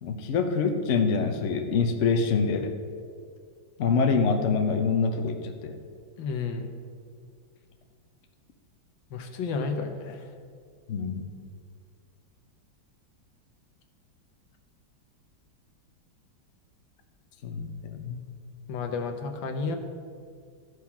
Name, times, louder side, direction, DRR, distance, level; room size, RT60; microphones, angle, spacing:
voice 1, 0.0-2.7 3.8-5.8 10.9-11.2 17.4-18.2, left 5 dB, 60° left, 6 dB, 0.8 m, -25 dB
voice 2, 6.2-6.7 9.1-10.2 18.7-19.8, left 4 dB, 75° left, 5 dB, 1.6 m, -31 dB
13.0 x 4.8 x 5.8 m, 2.1 s
omnidirectional pair, 2.2 m